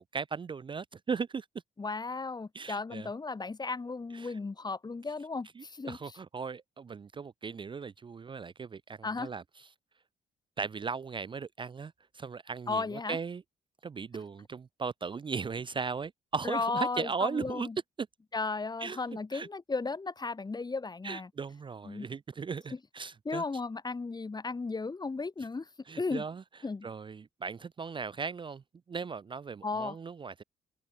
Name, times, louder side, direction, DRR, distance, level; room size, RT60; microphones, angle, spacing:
voice 1, 0.0-1.5 2.5-3.1 4.1-4.4 5.6-9.4 10.6-13.4 13.8-17.7 18.0-18.1 18.8-19.0 19.3-19.5 21.0-23.4 25.9-26.4 26.8-28.6 28.9-30.4, right 5 dB, 30° right, 0.5 m, -37 dB
voice 2, 1.8-6.0 9.0-9.3 12.7-13.2 16.4-17.7 18.3-21.3 21.8-22.1 23.2-25.7 26.0-26.2 26.6-26.9 29.6-30.0, left 3 dB, 25° left, 1.1 m, -35 dB
hypercardioid pair, 50°, 17 cm